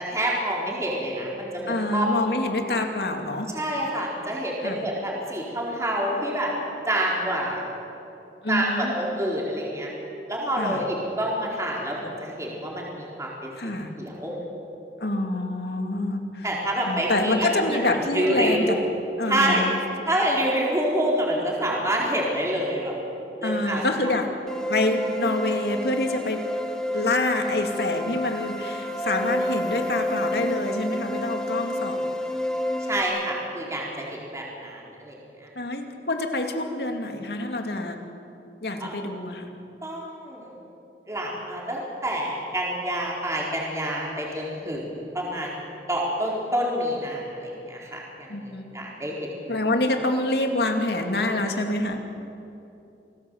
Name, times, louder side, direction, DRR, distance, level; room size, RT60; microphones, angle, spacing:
voice 1, 0.0-2.0 2.3-2.4 3.5-6.5 6.9-7.6 8.5-9.9 10.3-14.3 16.4-17.8 18.1-18.6 19.3-19.7 20.1-22.9 23.4-23.8 32.9-35.5 38.8-38.9 39.8-40.5 41.1-49.6, right 1 dB, 15° right, -3 dB, 4.4 m, -27 dB
voice 2, 1.7-3.5 4.6-4.9 8.4-8.9 10.6-10.9 13.6-14.0 15.0-16.5 16.8-18.8 19.2-19.7 23.4-24.3 24.7-26.5 26.9-32.0 35.6-38.0 38.6-39.5 48.3-48.9 49.5-52.0, left 2 dB, 65° left, 4 dB, 2.6 m, -26 dB
sound 1, 24.5-33.0, left 1 dB, 5° left, 1.6 m, -29 dB
27.5 x 18.5 x 8.1 m, 2.8 s
head